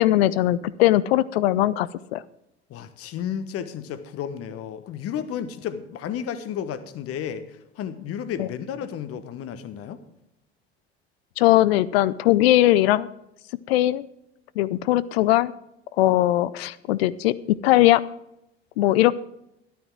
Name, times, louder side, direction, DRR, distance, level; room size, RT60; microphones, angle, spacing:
voice 1, 0.0-2.2 8.4-8.5 11.4-13.1 13.7-14.1 14.6-15.5 16.0-18.0 18.8-19.1, left 15 dB, 65° left, 18 dB, 0.6 m, -20 dB
voice 2, 2.7-10.0, left 8 dB, 45° left, 12 dB, 1.1 m, -32 dB
12.5 x 9.3 x 4.6 m, 0.84 s
figure-of-eight pair, 65°, 33 cm